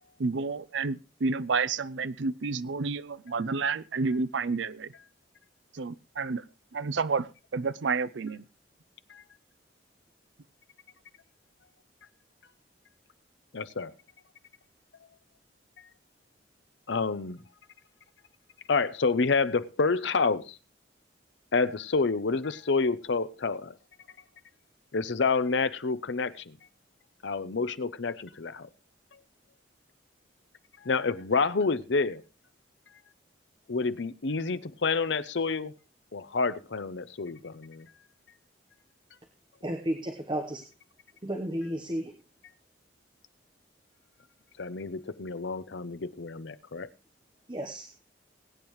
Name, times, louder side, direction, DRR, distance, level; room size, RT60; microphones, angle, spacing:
voice 1, 0.2-4.9 5.7-6.4 6.7-8.4, right 4 dB, 75° right, 16 dB, 0.5 m, -30 dB
voice 2, 13.5-13.9 16.9-17.4 18.7-20.6 21.5-23.7 24.9-26.6 27.2-28.7 30.8-32.2 33.7-35.7 36.1-37.9 44.6-46.9, left 4 dB, 70° left, 14 dB, 0.7 m, -28 dB
voice 3, 39.6-40.7 41.2-42.1 47.5-47.9, right 1 dB, 25° right, 5 dB, 1.0 m, -33 dB
21.0 x 8.9 x 3.1 m, 0.32 s
head